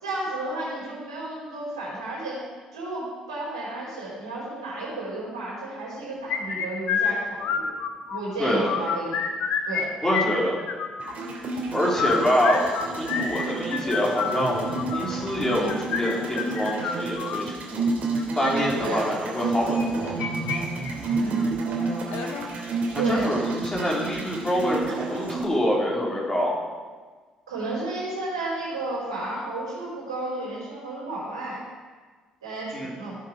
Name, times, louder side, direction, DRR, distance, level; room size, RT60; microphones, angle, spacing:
voice 1, 0.0-2.4 2.7-7.7 8.1-9.2 9.6-9.9 18.8-19.1 21.2-21.5 22.9-23.3 27.5-31.6 32.4-33.2, right 2 dB, 80° right, -6 dB, 4.7 m, -32 dB
sound 1, 6.3-8.2 8.5-9.8 10.1-11.1 11.8-17.4 18.2-18.5 19.7-20.6 20.8-20.9 21.4-21.5 22.1-22.5, left 6 dB, 60° left, 1.2 m, -28 dB
voice 2, 8.4-8.7 10.0-10.6 11.7-12.7 12.9-17.8 18.3-20.1 23.1-26.6 32.7-32.9, equal, 20° left, -4 dB, 3.7 m, -25 dB
sound 2, 11.0-25.4, right 3 dB, 55° right, 2.8 m, -30 dB
15.5 x 7.6 x 5.2 m, 1.4 s
figure-of-eight pair, 45°, 3 cm